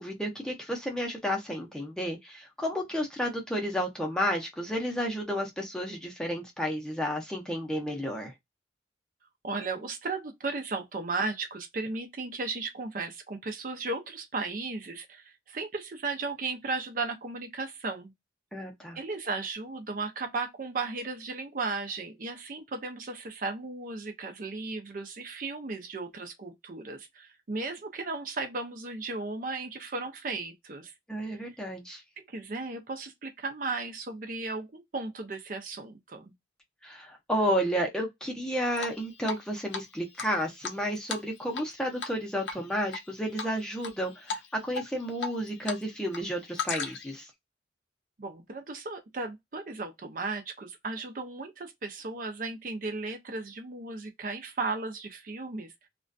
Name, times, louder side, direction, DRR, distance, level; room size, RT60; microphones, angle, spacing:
voice 1, 0.0-8.3 18.5-19.0 31.1-32.0 36.8-47.3, equal, 5° left, 0.6 m, -32 dB
voice 2, 9.4-18.1 18.9-30.9 31.2-31.4 32.2-36.3 48.2-55.7, right 3 dB, 45° right, 0.5 m, -35 dB
Drip, 38.8-39.4 39.7-39.8 40.2-41.7 42.0-42.2 42.5-43.0 43.4-43.9 44.3-44.5 44.7-45.8 46.1-47.2, left 5 dB, 80° left, 0.6 m, -35 dB
2.4 x 2.2 x 2.5 m
head